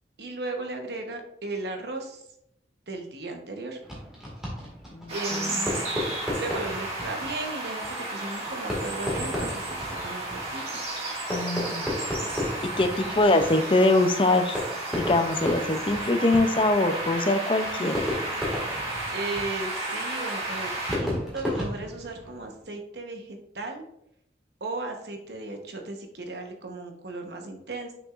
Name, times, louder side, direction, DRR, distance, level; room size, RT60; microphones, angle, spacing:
voice 1, 0.2-2.2 2.9-3.8 5.1-5.9 6.4-7.8 8.1-10.8 17.6-18.0 18.3-18.6 19.1-23.8 24.6-27.9, right 2 dB, 70° right, 4 dB, 1.0 m, -36 dB
Fireworks, 3.8-22.6, left 1 dB, 5° right, 1.9 m, -35 dB
sound 1, 5.1-21.0, right 2 dB, 35° right, 1.9 m, -33 dB
voice 2, 11.3-11.9 12.6-14.6 14.9-18.1, left 2 dB, 30° left, 7 dB, 0.5 m, -23 dB
6.6 x 6.0 x 2.5 m, 0.77 s
head